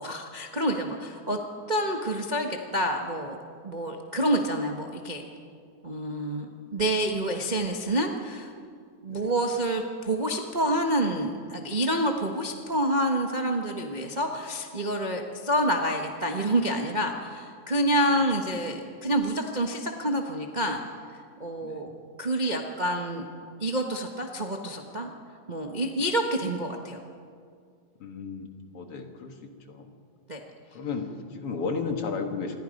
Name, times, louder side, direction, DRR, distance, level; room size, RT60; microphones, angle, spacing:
voice 1, 0.0-1.4 1.7-3.4 3.6-5.2 5.8-8.5 9.0-20.8 21.4-21.9 22.2-23.2 23.6-25.1 25.5-27.0 30.3-30.4, right 1 dB, 70° right, 2 dB, 0.4 m, -28 dB
voice 2, 21.6-22.0 28.0-28.5 28.7-29.9 30.7-32.6, left 4 dB, 55° left, 4 dB, 2.5 m, -34 dB
27.0 x 21.5 x 5.3 m, 2.2 s
omnidirectional pair, 3.3 m